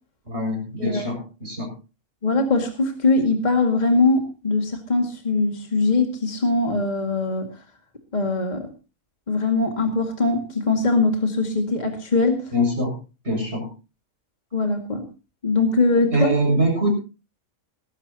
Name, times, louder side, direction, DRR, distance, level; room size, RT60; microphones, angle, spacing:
voice 1, 0.2-1.7 12.5-12.9 13.2-13.7 16.1-16.9, right 1 dB, 50° right, 2 dB, 7.4 m, -23 dB
voice 2, 2.2-7.5 8.1-8.7 9.3-12.4 14.5-15.0 15.4-16.3, left 3 dB, 30° left, 3 dB, 2.2 m, -21 dB
19.5 x 15.5 x 2.9 m, 0.33 s
omnidirectional pair, 1.5 m